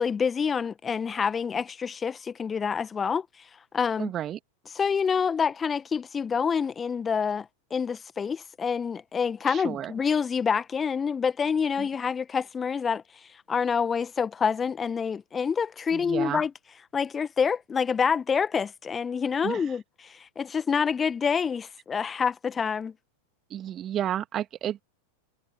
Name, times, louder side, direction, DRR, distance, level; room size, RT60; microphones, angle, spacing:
voice 1, 0.0-4.1 4.7-16.5 16.9-22.9, left 6 dB, 20° left, 1.6 m, -27 dB
voice 2, 4.0-4.4 9.5-9.9 11.8-11.9 15.9-16.4 19.4-19.7 23.5-24.8, right 11 dB, 30° right, 2.1 m, -32 dB
figure-of-eight pair, 90°, 0 cm